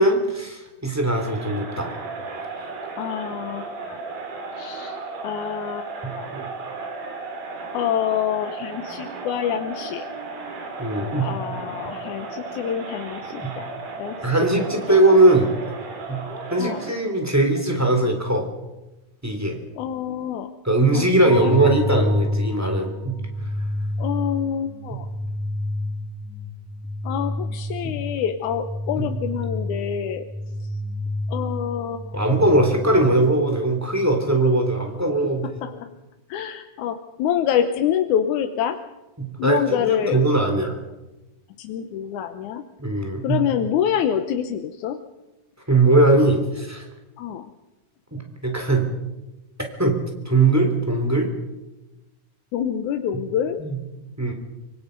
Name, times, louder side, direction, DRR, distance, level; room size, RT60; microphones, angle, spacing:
voice 1, 0.0-1.9 6.3-6.5 10.8-11.3 13.4-13.5 14.2-15.5 16.1-16.2 16.5-18.5 19.2-19.6 20.6-23.1 29.0-29.1 32.1-35.4 39.2-40.8 42.8-43.4 45.7-46.8 48.1-48.9 49.8-50.0 50.2-51.3 53.6-53.8 54.2-54.3, right 2 dB, 5° right, 3 dB, 3.1 m, -20 dB
Crowd, 1.0-17.1, right 3 dB, 75° right, 4.9 m, -35 dB
voice 2, 3.0-4.0 4.6-5.0 5.2-6.3 7.7-10.1 11.2-13.7 14.0-14.6 14.9-15.0 16.6-16.8 19.8-20.5 20.9-21.1 21.3-21.6 24.0-25.1 27.0-30.3 31.3-32.2 35.6-36.0 36.3-38.8 39.4-40.2 41.6-42.6 43.2-45.0 47.2-47.5 52.5-53.6, left 9 dB, 70° left, 7 dB, 2.1 m, -26 dB
sound 1, 21.2-33.2, left 1 dB, 35° left, 2.7 m, -29 dB
25.0 x 24.5 x 5.4 m, 1.1 s
omnidirectional pair, 4.2 m